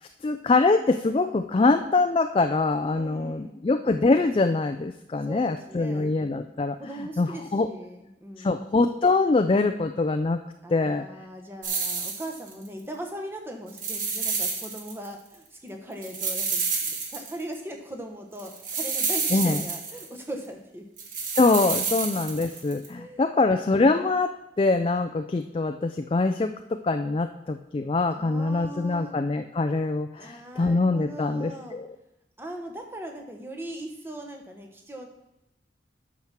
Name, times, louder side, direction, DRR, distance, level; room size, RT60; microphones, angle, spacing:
voice 1, 0.2-7.7 8.4-10.4 10.7-11.1 19.3-19.6 21.3-31.9, left 3 dB, 30° left, 7 dB, 0.3 m, -24 dB
voice 2, 2.9-3.6 5.2-6.1 6.8-8.6 10.6-20.8 21.7-21.9 23.0-23.2 28.1-29.1 30.1-31.8 32.4-35.1, right 1 dB, 15° right, 2 dB, 1.1 m, -39 dB
sound 1, 11.6-12.7 13.7-15.1 15.3-15.4 16.0-17.5 18.4-20.2 21.0-22.9, right 5 dB, 45° right, 1.5 m, -29 dB
8.7 x 6.1 x 5.8 m, 0.90 s
head